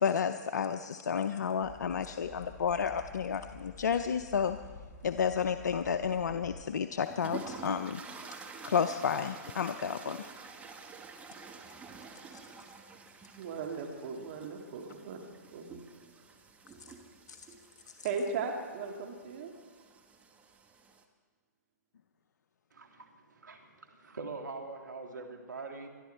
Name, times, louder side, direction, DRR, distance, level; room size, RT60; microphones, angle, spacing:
voice 1, 0.0-4.6 5.0-8.0 8.6-10.3 17.3-17.4, left 7 dB, 75° left, 9 dB, 0.6 m, -31 dB
sound 1, 1.6-6.6, left 4 dB, 30° left, 3.9 m, -50 dB
sound 2, 7.0-21.0, right 5 dB, 15° right, 1.1 m, -49 dB
voice 2, 13.3-15.2 15.5-15.7 18.0-19.5, right 5 dB, 50° right, 2 dB, 2.0 m, -37 dB
voice 3, 22.7-25.9, right 3 dB, 85° right, 4 dB, 2.2 m, -43 dB
22.0 x 12.0 x 4.5 m, 1.5 s
hypercardioid pair, 130°, 10 cm